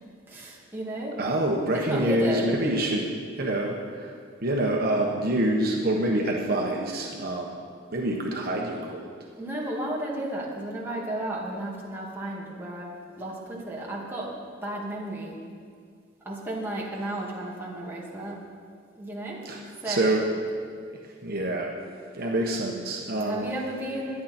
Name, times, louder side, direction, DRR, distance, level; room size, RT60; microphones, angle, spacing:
voice 1, 0.3-1.1 1.8-2.6 9.4-14.3 14.6-15.4 16.3-18.4 19.0-19.4 19.8-20.2 23.2-24.2, right 1 dB, 10° right, -4 dB, 2.3 m, -33 dB
voice 2, 1.2-3.1 3.4-4.1 4.4-7.6 7.9-9.1 19.4-20.3 21.2-21.7 22.1-23.5, right 1 dB, 50° right, -1 dB, 1.3 m, -26 dB
22.0 x 9.4 x 4.5 m, 2.1 s
head